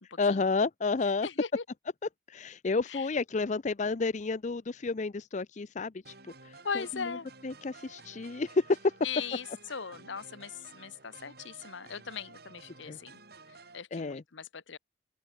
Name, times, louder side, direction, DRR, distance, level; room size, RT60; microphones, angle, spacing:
voice 1, 0.2-1.3 2.3-6.1 6.4-7.2 7.4-8.9 12.9-13.0 13.9-14.2, left 3 dB, 40° left, 0.5 m, -30 dB
voice 2, 1.2-1.6 2.9-3.1 6.6-7.3 9.0-13.2 13.7-14.8, left 6 dB, 75° left, 1.1 m, -39 dB
sound 1, 6.0-13.8, right 3 dB, 55° right, 7.6 m, -53 dB
open air
head